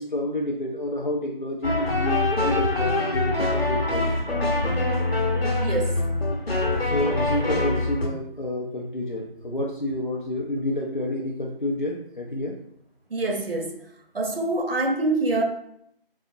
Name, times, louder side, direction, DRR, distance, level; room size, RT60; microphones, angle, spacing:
voice 1, 0.0-4.5 6.8-12.6, left 1 dB, 55° left, -3 dB, 0.4 m, -29 dB
sound 1, 1.6-8.1, left 2 dB, 85° left, 0.9 m, -24 dB
voice 2, 5.6-6.0 13.1-13.7 14.1-15.4, right 2 dB, 70° right, 2 dB, 0.8 m, -25 dB
3.8 x 2.0 x 2.5 m, 0.71 s
figure-of-eight pair, 180°, 30 cm